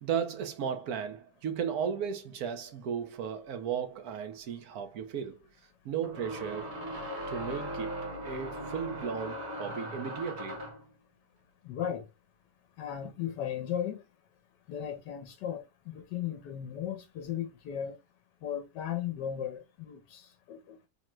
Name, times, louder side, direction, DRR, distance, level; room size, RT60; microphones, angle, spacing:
voice 1, 0.0-5.4 5.8-6.7 7.3-10.6, right 7 dB, 65° right, 1.1 m, -35 dB
sound 1, 4.1-4.2 6.0-10.9, equal, 40° right, 1.3 m, -39 dB
voice 2, 11.6-12.1 12.8-14.1 14.7-18.0 18.4-20.9, left 9 dB, 80° left, 1.2 m, -36 dB
3.8 x 2.1 x 4.3 m
omnidirectional pair, 1.8 m